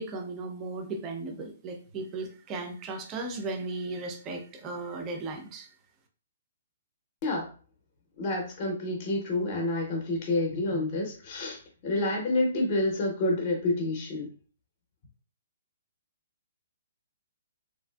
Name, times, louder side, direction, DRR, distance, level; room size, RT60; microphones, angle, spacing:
voice 1, 0.0-5.7, right 3 dB, 15° right, 4 dB, 0.4 m, -36 dB
voice 2, 8.2-14.3, left 2 dB, 30° left, 0 dB, 0.6 m, -28 dB
3.1 x 2.5 x 2.3 m, 0.39 s
hypercardioid pair, 170°, 0 cm